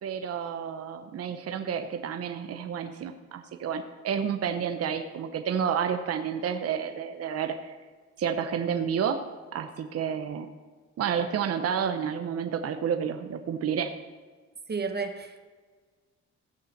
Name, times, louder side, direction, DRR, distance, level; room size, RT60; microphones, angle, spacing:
voice 1, 0.0-7.7 8.2-9.2 9.5-10.5 11.0-13.9, right 7 dB, 50° right, 7 dB, 0.8 m, -30 dB
voice 2, 14.7-15.4, right 4 dB, 35° right, 6 dB, 1.1 m, -32 dB
15.5 x 5.6 x 6.4 m, 1.4 s
cardioid pair, 90°, 30 cm